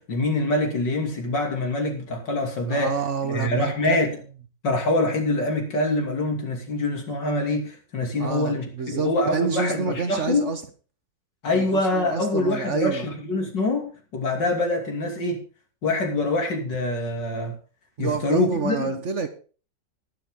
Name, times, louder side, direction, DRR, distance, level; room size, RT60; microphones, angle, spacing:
voice 1, 0.0-2.9 3.2-4.2 4.6-10.5 11.4-15.4 15.8-17.5 18.0-19.0, left 2 dB, 85° left, 2 dB, 3.5 m, -25 dB
voice 2, 2.7-4.0 8.2-10.6 11.5-13.1 18.0-19.3, right 5 dB, 50° right, 9 dB, 1.2 m, -28 dB
19.5 x 6.8 x 3.8 m, 0.37 s
omnidirectional pair, 1.9 m